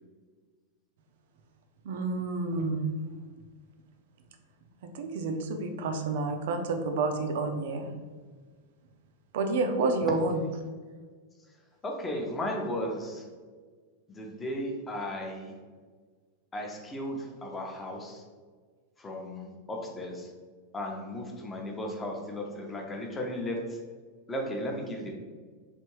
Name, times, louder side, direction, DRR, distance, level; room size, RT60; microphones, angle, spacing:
voice 1, 1.8-2.9 4.9-7.8 9.3-10.4, right 3 dB, 55° right, 6 dB, 0.4 m, -29 dB
voice 2, 11.8-13.3 14.1-15.5 16.5-18.2 19.0-20.3 20.7-23.8 24.3-25.1, left 1 dB, 15° left, 1 dB, 0.6 m, -35 dB
3.3 x 2.6 x 3.1 m, 1.5 s
figure-of-eight pair, 90°, 0 cm